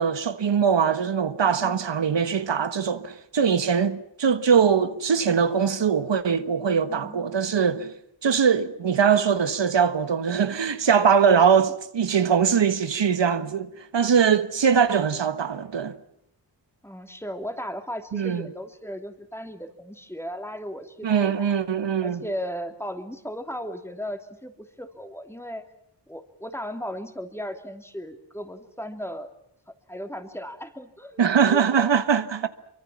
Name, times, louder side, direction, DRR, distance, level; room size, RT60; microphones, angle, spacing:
voice 1, 0.0-7.9 8.2-15.9 18.1-18.5 21.0-22.2 31.2-32.5, right 7 dB, 80° right, 1.4 m, -22 dB
voice 2, 6.9-7.2 16.8-21.5 22.0-25.7 26.1-29.3 29.9-31.9, equal, 5° left, 2.9 m, -36 dB
25.0 x 24.0 x 7.3 m
wide cardioid pair, 75°, 43 cm